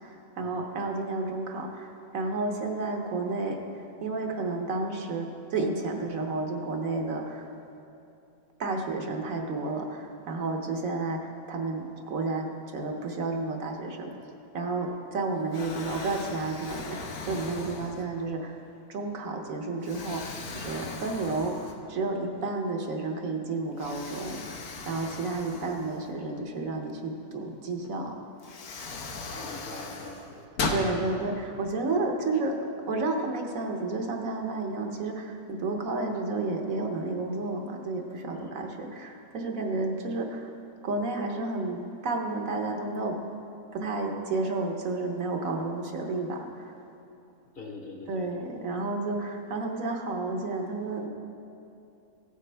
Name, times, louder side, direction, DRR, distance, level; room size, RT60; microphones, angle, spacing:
voice 1, 0.0-3.6 4.0-7.5 8.6-14.1 14.5-18.6 18.9-24.4 24.9-28.1 30.6-32.5 32.9-40.5 40.8-43.2 43.7-46.7 48.1-51.1, right 3 dB, 65° right, 2 dB, 1.2 m, -31 dB
Explosion, 14.8-15.2 15.5-18.4 19.0-19.1 19.8-22.1 22.4-22.5 23.8-26.4 27.8-27.9 28.4-30.9, left 4 dB, 70° left, 1.4 m, -38 dB
voice 2, 29.3-30.4 38.3-38.5 47.5-48.4, left 2 dB, 40° left, 0 dB, 1.2 m, -43 dB
15.0 x 8.4 x 3.3 m, 2.7 s
omnidirectional pair, 1.6 m